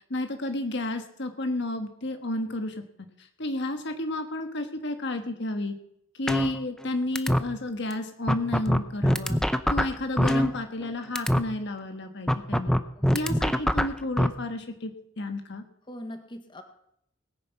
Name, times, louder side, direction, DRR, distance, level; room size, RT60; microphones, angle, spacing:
voice 1, 0.1-2.7 3.2-5.7 6.2-9.4 9.7-12.8 13.1-14.9 15.2-15.6, left 2 dB, 60° left, 6 dB, 1.5 m, -31 dB
sound 1, 6.3-6.9 7.2-7.4 7.9-8.0 8.3-10.9 11.2-11.4 12.3-14.3, equal, 5° left, 0.7 m, -23 dB
voice 2, 13.0-13.4 15.9-16.6, left 1 dB, 25° left, 7 dB, 1.5 m, -41 dB
20.0 x 9.6 x 5.9 m, 0.72 s
head